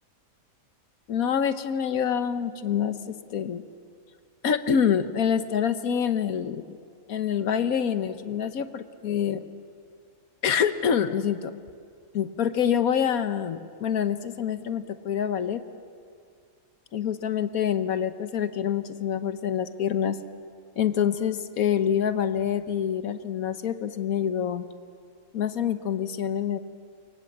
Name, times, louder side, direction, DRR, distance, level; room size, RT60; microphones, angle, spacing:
voice 1, 1.1-3.6 4.4-6.6 7.1-9.4 10.4-11.5 12.1-15.6 16.9-20.2 20.8-24.7 25.3-26.6, left 8 dB, 85° left, 11 dB, 1.5 m, -26 dB
29.5 x 23.5 x 7.5 m, 2.2 s
omnidirectional pair, 1.5 m